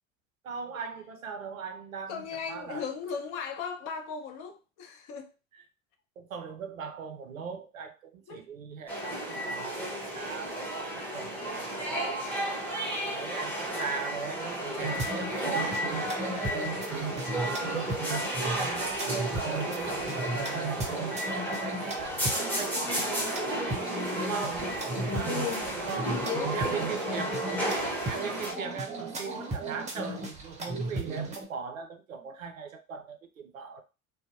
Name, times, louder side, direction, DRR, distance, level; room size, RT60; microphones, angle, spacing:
voice 1, 0.4-2.9 5.5-5.6 6.2-12.2 13.1-17.4 18.4-23.2 24.2-25.4 25.7-26.2 26.5-27.5 28.1-33.8, right 6 dB, 85° right, 0.5 m, -40 dB
voice 2, 2.1-5.3 8.3-8.4 23.7-25.6 25.9-27.0, left 6 dB, 45° left, 0.6 m, -37 dB
sound 1, 8.9-28.5, right 1 dB, 5° left, 0.9 m, -33 dB
sound 2, 14.8-31.5, right 3 dB, 15° right, 0.7 m, -35 dB
2.5 x 2.0 x 2.5 m
figure-of-eight pair, 65°, 39 cm